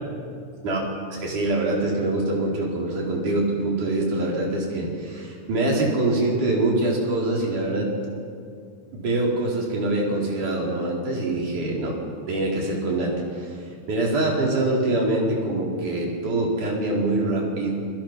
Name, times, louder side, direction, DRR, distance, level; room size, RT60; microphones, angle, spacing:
voice 1, 1.1-7.9 8.9-12.0 12.3-13.6 13.9-17.7, right 2 dB, 80° right, -2 dB, 5.9 m, -24 dB
28.5 x 23.5 x 6.1 m, 2.3 s
omnidirectional pair, 3.5 m